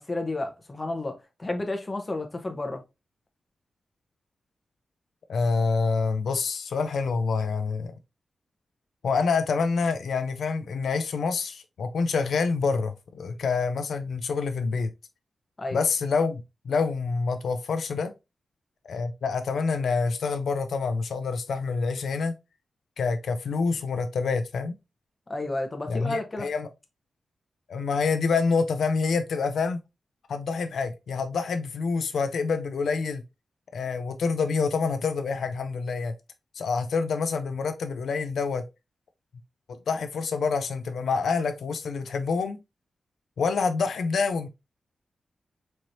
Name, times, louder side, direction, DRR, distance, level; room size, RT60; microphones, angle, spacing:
voice 1, 0.0-2.8 15.6-15.8 25.3-26.5, left 2 dB, 25° left, 0.8 m, -31 dB
voice 2, 5.3-7.9 9.0-14.9 15.7-18.1 18.8-22.3 23.0-24.8 25.9-26.7 27.7-29.8 30.3-33.2 33.7-36.1 36.5-38.6 39.9-42.6 43.4-44.5, left 4 dB, 85° left, 0.4 m, -27 dB
4.3 x 3.1 x 2.6 m
wide cardioid pair, 155°, 0 cm